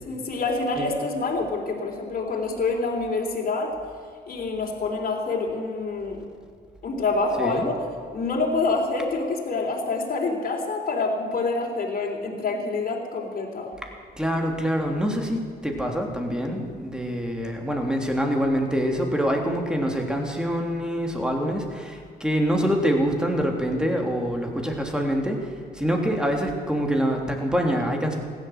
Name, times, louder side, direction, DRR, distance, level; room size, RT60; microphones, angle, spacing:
voice 1, 0.1-3.8 4.3-6.2 6.8-7.8 8.1-13.7, left 3 dB, 55° left, 0 dB, 3.6 m, -27 dB
voice 2, 7.4-7.7 14.2-28.2, equal, 5° right, 2 dB, 3.3 m, -25 dB
15.5 x 11.5 x 8.1 m, 2.1 s
supercardioid pair, 65°, 18 cm